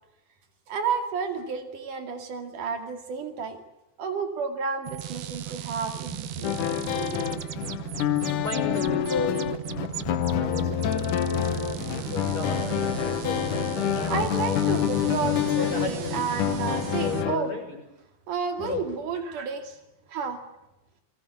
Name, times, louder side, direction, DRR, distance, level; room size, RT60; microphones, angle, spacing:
voice 1, 0.7-3.6 4.0-6.6 7.0-7.4 14.1-17.5 18.3-19.8 20.1-20.4, right 5 dB, 80° right, 6 dB, 4.0 m, -31 dB
sound 1, 4.8-17.2, right 12 dB, 60° right, 1.9 m, -36 dB
sound 2, 6.4-17.4, left 11 dB, 80° left, 2.8 m, -27 dB
voice 2, 8.4-9.5 10.3-11.1 11.9-14.3 15.3-16.3 16.9-17.8 18.6-18.9, left 4 dB, 45° left, 5 dB, 7.5 m, -34 dB
30.0 x 20.5 x 8.3 m, 0.92 s
omnidirectional pair, 3.6 m